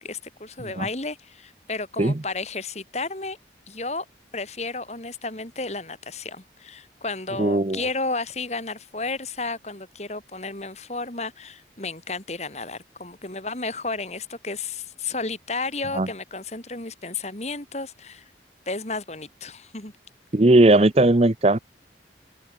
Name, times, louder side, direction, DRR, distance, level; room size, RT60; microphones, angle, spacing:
voice 1, 0.0-3.4 3.7-4.1 4.3-18.2 18.7-19.9, left 3 dB, 40° left, 3.5 m, -32 dB
voice 2, 7.4-7.8 15.9-16.1 20.3-21.6, right 2 dB, 35° right, 0.7 m, -17 dB
head